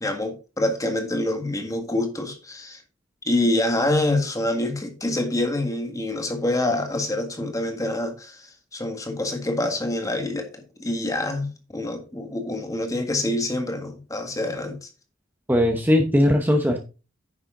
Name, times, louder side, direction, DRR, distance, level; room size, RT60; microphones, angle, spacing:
voice 1, 0.0-2.8 3.3-14.9, left 1 dB, 15° left, 1.7 m, -26 dB
voice 2, 15.5-16.8, left 1 dB, 10° right, 0.9 m, -19 dB
9.9 x 6.6 x 3.8 m
head